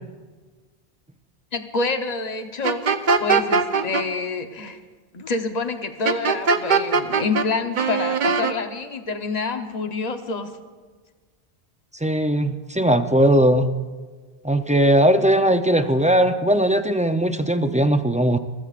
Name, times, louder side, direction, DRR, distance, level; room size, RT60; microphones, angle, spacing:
voice 1, 1.5-2.8 3.2-4.8 5.1-10.6, left 4 dB, 40° left, 7 dB, 1.0 m, -27 dB
sound 1, 2.6-4.0 6.1-7.5 7.8-8.5, right 5 dB, 50° right, 0.9 m, -20 dB
voice 2, 12.0-13.7 14.4-18.4, right 1 dB, 10° right, 8 dB, 0.3 m, -19 dB
28.5 x 15.0 x 2.5 m, 1.4 s
omnidirectional pair, 1.1 m